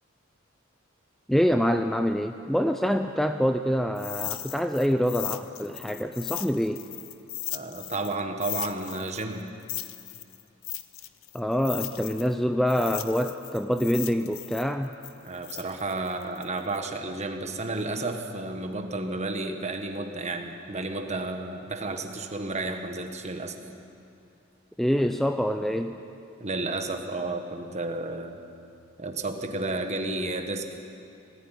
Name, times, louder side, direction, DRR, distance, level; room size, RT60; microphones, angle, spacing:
voice 1, 1.3-6.8 11.3-15.0 24.8-26.0, equal, ahead, 7 dB, 0.5 m, -26 dB
sound 1, 3.9-8.1 8.4-12.3 12.7-16.8, left 15 dB, 80° left, 0.8 m, -37 dB
voice 2, 7.5-9.5 15.2-23.5 26.4-28.4 29.0-30.8, right 2 dB, 35° right, 5 dB, 1.5 m, -32 dB
18.5 x 15.5 x 9.3 m, 2.6 s
head